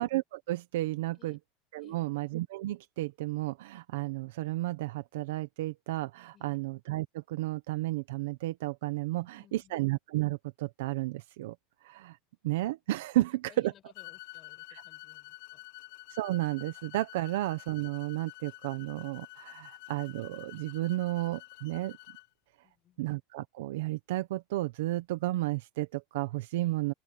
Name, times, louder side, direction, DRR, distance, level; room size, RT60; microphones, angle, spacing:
voice 1, 0.0-1.4 1.7-11.5 11.8-12.2 12.4-13.7 14.7-14.8 16.1-22.0 23.0-26.9, right 17 dB, 75° right, 0.8 m, -32 dB
voice 2, 1.8-2.1 6.3-6.6 9.1-9.8 13.2-15.8 22.6-23.2 26.5-26.8, left 11 dB, 25° left, 6.8 m, -61 dB
sound 1, 13.9-22.3, left 19 dB, 60° left, 1.3 m, -49 dB
open air
supercardioid pair, 170°, 0 cm